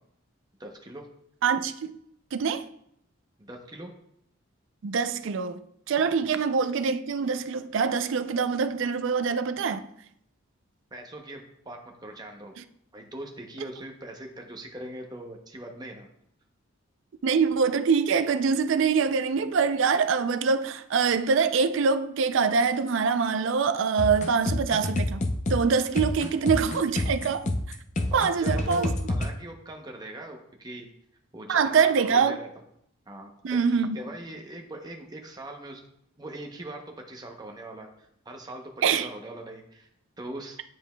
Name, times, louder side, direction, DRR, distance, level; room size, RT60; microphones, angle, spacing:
voice 1, 0.6-1.1 3.4-3.9 6.2-6.4 10.9-12.5 12.9-16.1 19.4-19.5 28.1-30.9 31.3-32.5 33.1-33.3 33.7-35.8 36.2-36.8 37.1-39.9 40.2-40.6, right 1 dB, 20° right, 0.6 m, -41 dB
voice 2, 1.4-1.9 2.3-2.7 4.8-5.6 5.9-9.9 17.2-25.2 25.5-27.5 28.1-28.9 31.5-32.4 33.4-34.0 38.8-39.1, right 5 dB, 65° right, 0.4 m, -24 dB
sound 1, 24.0-29.3, left 1 dB, 35° left, 0.4 m, -28 dB
9.1 x 5.0 x 2.2 m
head